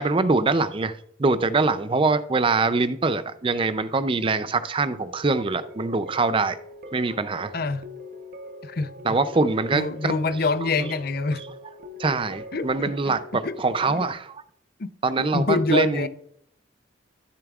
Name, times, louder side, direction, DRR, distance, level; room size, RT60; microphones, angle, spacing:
voice 1, 0.0-6.6 6.9-7.5 9.0-10.2 10.8-10.9 12.0-14.4 15.0-16.1, right 3 dB, 25° right, 0.4 m, -23 dB
sound 1, 5.6-14.1, left 1 dB, 50° right, 0.9 m, -43 dB
voice 2, 7.5-7.8 8.6-9.2 9.7-11.4 12.5-13.2 13.4-13.6 13.9-14.1 14.8-14.9 15.2-16.1, left 3 dB, 50° left, 0.5 m, -26 dB
13.5 x 7.1 x 2.4 m
head